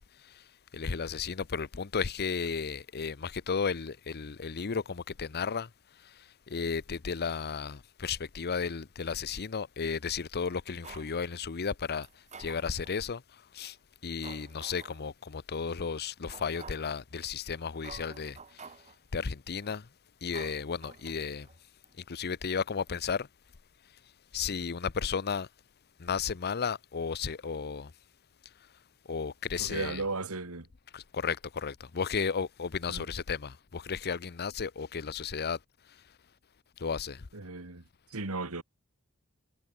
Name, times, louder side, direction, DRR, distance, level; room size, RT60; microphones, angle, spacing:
voice 1, 0.0-5.7 6.0-13.8 14.0-18.7 19.1-19.9 20.2-21.5 22.1-23.3 24.3-25.5 26.0-27.9 29.1-30.0 30.9-35.6 35.9-36.0 36.8-37.3, left 5 dB, 45° left, 0.7 m, -34 dB
sound 1, 10.8-11.1 12.0-13.0 13.6-13.7 14.2-15.0 15.5-15.6 16.3-17.0 17.5-17.6 17.8-19.0 19.5-19.8 20.3-21.6 21.8-21.9, right 5 dB, 30° right, 2.6 m, -50 dB
voice 2, 29.6-30.7 32.9-33.0 37.3-37.8 38.1-38.6, right 3 dB, 70° right, 2.1 m, -35 dB
head